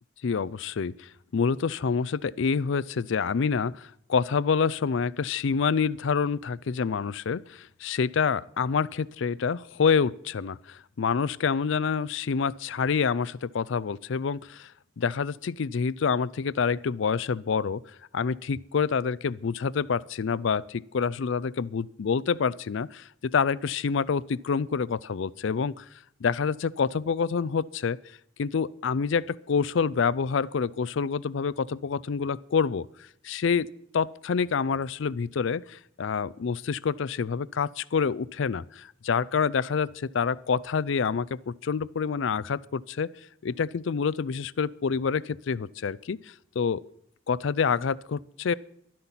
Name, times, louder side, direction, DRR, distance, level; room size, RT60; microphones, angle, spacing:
voice 1, 0.2-14.7 15.0-17.8 18.1-25.9 26.2-28.0 28.4-32.9 33.2-33.7 33.9-43.1 43.4-46.2 46.6-46.8 47.3-48.5, left 6 dB, 60° left, 21 dB, 0.4 m, -27 dB
12.0 x 12.0 x 5.7 m, 0.72 s
head